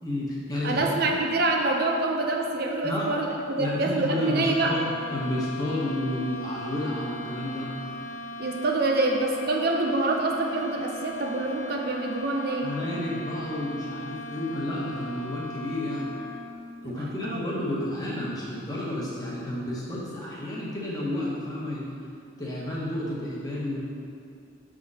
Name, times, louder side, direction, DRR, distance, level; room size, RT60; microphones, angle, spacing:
voice 1, 0.0-1.2 2.8-3.1 3.6-7.7 12.6-16.1 16.8-21.9 22.4-23.8, left 1 dB, 20° left, -6 dB, 1.2 m, -31 dB
voice 2, 0.6-4.8 8.4-12.7 16.8-16.9 17.2-17.4, right 2 dB, 55° right, 1 dB, 0.5 m, -26 dB
sound 1, 4.1-16.8, left 1 dB, 40° left, 1.4 m, -39 dB
6.1 x 3.8 x 5.5 m, 2.4 s
head